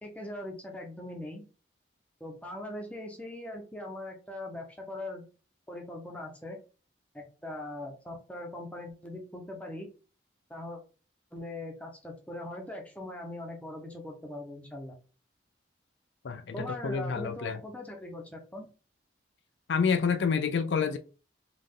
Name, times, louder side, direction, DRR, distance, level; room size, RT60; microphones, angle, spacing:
voice 1, 0.0-1.4 2.2-5.2 5.7-6.6 7.1-9.9 10.5-10.8 11.3-14.9 16.5-18.7, left 1 dB, 5° left, 1.0 m, -40 dB
voice 2, 16.2-17.6 19.7-21.0, left 6 dB, 70° left, 0.4 m, -28 dB
3.7 x 3.2 x 3.7 m
head